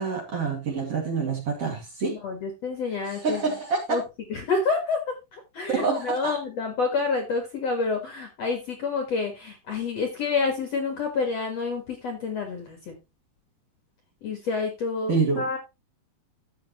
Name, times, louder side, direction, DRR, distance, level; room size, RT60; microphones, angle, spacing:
voice 1, 0.0-2.2 3.1-4.0 5.7-6.3 15.1-15.4, right 4 dB, 45° right, 2.7 m, -27 dB
voice 2, 2.1-3.4 3.9-4.0 4.3-13.0 14.2-15.6, left 4 dB, 55° left, 2.1 m, -28 dB
13.0 x 7.3 x 3.0 m
omnidirectional pair, 4.6 m